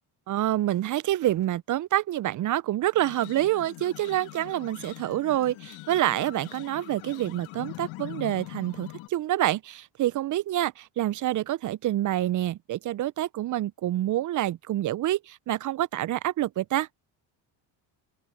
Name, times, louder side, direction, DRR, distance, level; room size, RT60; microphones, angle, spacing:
voice 1, 0.3-16.9, right 14 dB, 40° right, 0.4 m, -27 dB
sound 1, 3.0-9.1, left 20 dB, 80° left, 1.3 m, -42 dB
open air
cardioid pair, 90°, 49 cm